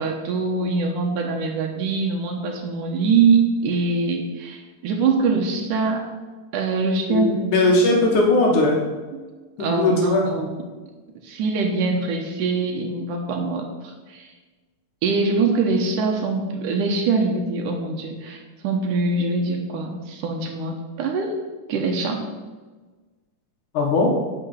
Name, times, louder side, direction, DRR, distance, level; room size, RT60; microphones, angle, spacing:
voice 1, 0.0-6.0 6.5-7.8 9.1-9.3 9.6-10.6 11.2-14.3 15.0-21.4 21.7-22.2, right 4 dB, 80° right, 2 dB, 2.6 m, -23 dB
voice 2, 7.1-8.8 9.6-10.3 23.7-24.1, left 2 dB, 70° left, -1 dB, 3.0 m, -19 dB
10.0 x 6.4 x 8.0 m, 1.3 s
omnidirectional pair, 3.7 m